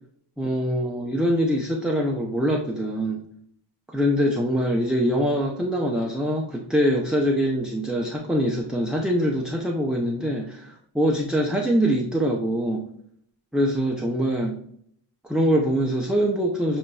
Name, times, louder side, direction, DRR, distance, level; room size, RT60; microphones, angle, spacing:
voice 1, 0.4-3.2 3.9-12.9 13.5-14.6 15.2-16.8, equal, ahead, -1 dB, 0.5 m, -24 dB
7.4 x 2.6 x 2.2 m, 0.68 s
wide cardioid pair, 125°, 46 cm